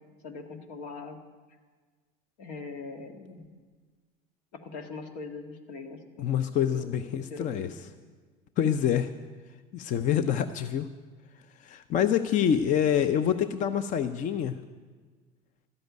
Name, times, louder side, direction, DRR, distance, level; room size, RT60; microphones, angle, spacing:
voice 1, 0.2-1.2 2.4-3.5 4.5-6.3 6.7-6.9 7.3-7.7, left 4 dB, 80° left, 5 dB, 1.7 m, -41 dB
voice 2, 6.2-7.7 8.6-9.1 9.7-10.9 11.6-14.6, left 9 dB, 40° left, 11 dB, 0.5 m, -26 dB
13.0 x 7.9 x 9.3 m, 1.5 s
supercardioid pair, 115°, 20 cm